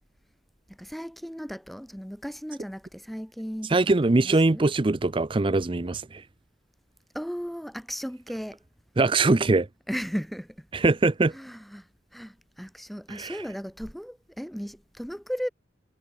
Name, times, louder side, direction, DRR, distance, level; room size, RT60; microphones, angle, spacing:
voice 1, 0.7-4.6 7.1-8.6 9.9-10.7 11.3-15.5, equal, ahead, 1.4 m, -36 dB
voice 2, 3.7-6.2 9.0-9.7 10.7-11.3 13.1-13.3, right 2 dB, 25° right, 0.5 m, -22 dB
head